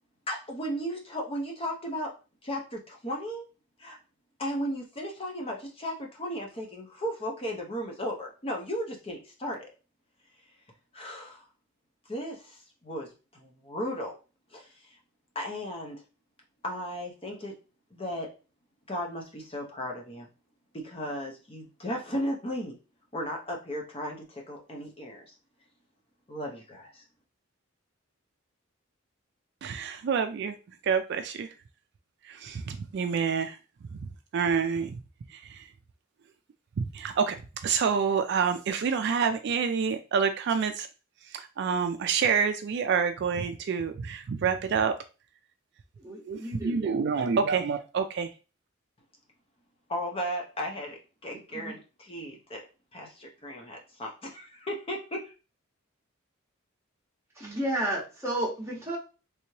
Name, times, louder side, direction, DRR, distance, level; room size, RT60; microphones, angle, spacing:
voice 1, 0.3-2.1 2.4-3.4 3.8-4.0 4.4-9.7 10.9-11.4 12.1-14.2 14.5-15.0 15.3-16.0 16.6-17.5 17.9-18.3 18.9-20.3 20.7-22.8 23.1-25.3 26.3-27.0 49.9-55.3, equal, 25° left, 1 dB, 0.7 m, -35 dB
voice 2, 29.6-30.5 30.8-31.5 32.3-33.6 34.3-34.9 35.3-35.6 36.8-37.4 37.6-40.9 41.3-44.9 46.3-48.3, right 6 dB, 55° right, 8 dB, 0.3 m, -27 dB
voice 3, 46.0-46.9 51.5-51.7 57.4-59.0, right 1 dB, 15° right, -4 dB, 1.4 m, -32 dB
3.4 x 3.1 x 2.8 m, 0.32 s
head